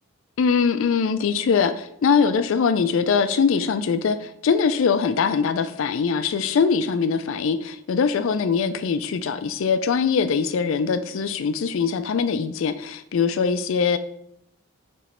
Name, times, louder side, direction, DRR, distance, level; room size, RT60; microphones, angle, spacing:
voice 1, 0.4-14.0, left 5 dB, 65° left, 11 dB, 0.3 m, -22 dB
7.7 x 3.0 x 4.3 m, 0.78 s
head